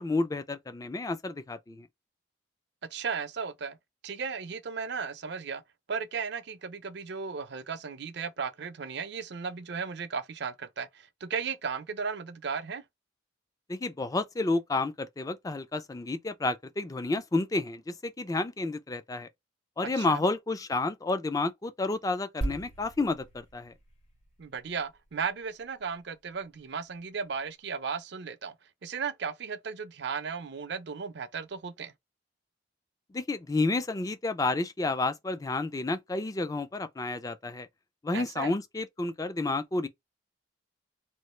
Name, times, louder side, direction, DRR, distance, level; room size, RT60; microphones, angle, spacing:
voice 1, 0.0-1.9 13.7-19.3 19.8-23.7 33.1-37.7 38.0-39.9, left 2 dB, 20° left, 0.3 m, -30 dB
voice 2, 2.8-3.8 4.0-5.6 5.9-12.8 20.0-20.2 24.4-28.6 28.8-31.9 38.1-38.5, right 5 dB, 60° right, 0.5 m, -35 dB
sound 1, 22.4-26.1 26.3-26.5, right 1 dB, 70° left, 1.7 m, -39 dB
3.1 x 2.4 x 3.1 m
head